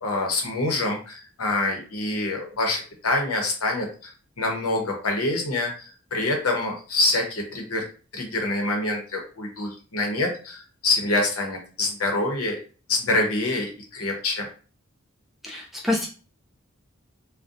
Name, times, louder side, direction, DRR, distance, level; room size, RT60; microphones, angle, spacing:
voice 1, 0.0-4.1 4.4-7.8 8.1-12.6 12.9-14.5, left 2 dB, 90° left, 1 dB, 0.8 m, -26 dB
voice 2, 15.4-16.1, left 2 dB, ahead, -3 dB, 0.4 m, -26 dB
2.6 x 2.1 x 2.4 m, 0.38 s
head